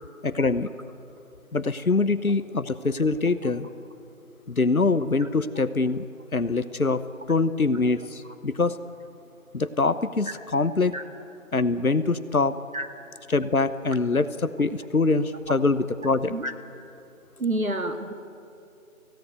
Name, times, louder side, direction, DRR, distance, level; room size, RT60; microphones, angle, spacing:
voice 1, 0.2-0.7 1.5-3.7 4.5-6.0 6.3-7.0 7.3-8.8 9.5-10.9 11.5-12.6 13.3-16.3, left 3 dB, 90° left, 13 dB, 1.1 m, -24 dB
voice 2, 17.4-18.1, right 2 dB, 75° right, 6 dB, 2.2 m, -28 dB
25.0 x 16.5 x 9.3 m, 2.7 s
figure-of-eight pair, 180°, 41 cm